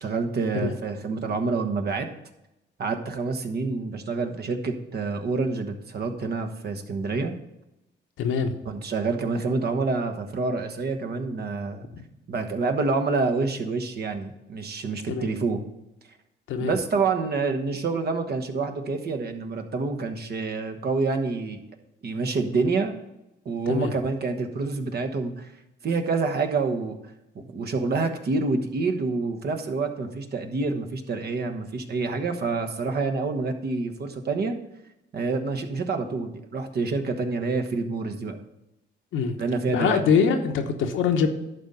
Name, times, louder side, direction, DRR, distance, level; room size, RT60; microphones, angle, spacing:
voice 1, 0.0-2.1 2.8-7.4 8.6-11.9 12.3-15.6 16.6-21.6 22.0-22.9 23.4-25.5 25.8-27.0 27.3-34.6 35.1-38.4 39.4-40.0, right 4 dB, 55° right, 6 dB, 1.2 m, -27 dB
voice 2, 8.2-8.6 11.9-12.0 15.1-15.3 16.5-16.8 23.7-23.9 39.1-39.3 39.7-41.3, left 6 dB, 80° left, 6 dB, 1.1 m, -24 dB
11.5 x 4.3 x 6.7 m, 0.92 s
cardioid pair, 90°, 20 cm